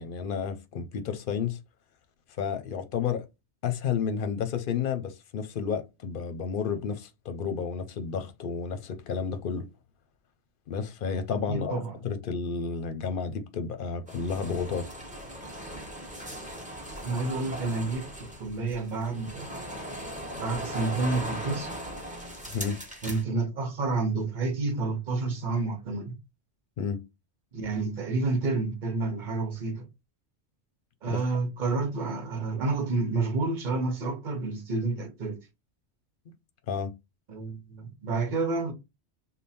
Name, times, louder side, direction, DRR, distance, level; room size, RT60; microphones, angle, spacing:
voice 1, 0.0-1.6 2.4-3.3 3.6-9.7 10.7-14.9 22.5-22.8 26.8-27.0 31.1-31.2 36.7-36.9, left 6 dB, 55° left, 0.8 m, -31 dB
voice 2, 11.5-11.9 17.0-19.6 20.3-21.7 23.0-26.1 27.5-29.8 31.0-35.4 37.3-38.7, right 3 dB, 45° right, 1.0 m, -29 dB
sound 1, 14.1-23.2, equal, 5° right, 0.9 m, -39 dB
3.5 x 2.1 x 4.1 m
omnidirectional pair, 1.1 m